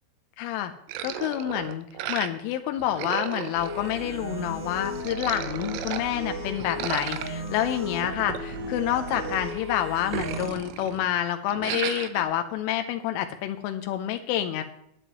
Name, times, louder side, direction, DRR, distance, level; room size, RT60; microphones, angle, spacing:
voice 1, 0.4-0.7 1.0-14.6, left 11 dB, 85° left, 7 dB, 3.2 m, -28 dB
sound 1, 0.9-2.5 2.8-4.4 4.9-6.0 6.6-9.6 9.9-11.1 11.5-12.2, right 11 dB, 80° right, 3.0 m, -35 dB
sound 2, 3.5-10.5, equal, 45° right, 5.3 m, -35 dB
20.0 x 8.1 x 3.0 m, 0.77 s
omnidirectional pair, 5.7 m